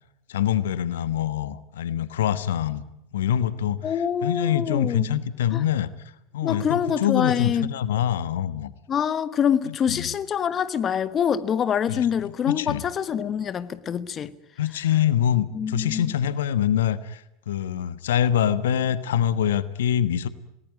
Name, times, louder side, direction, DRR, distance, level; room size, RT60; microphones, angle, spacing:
voice 1, 0.3-2.8 3.1-3.9 4.2-5.9 6.3-8.7 9.7-10.1 11.9-12.8 14.6-20.3, left 10 dB, 70° left, 1.2 m, -25 dB
voice 2, 3.8-5.0 5.5-5.6 6.4-7.7 8.9-14.3 15.5-16.1, left 8 dB, 30° left, 1.3 m, -25 dB
29.0 x 19.0 x 9.3 m
hypercardioid pair, 85°, 0 cm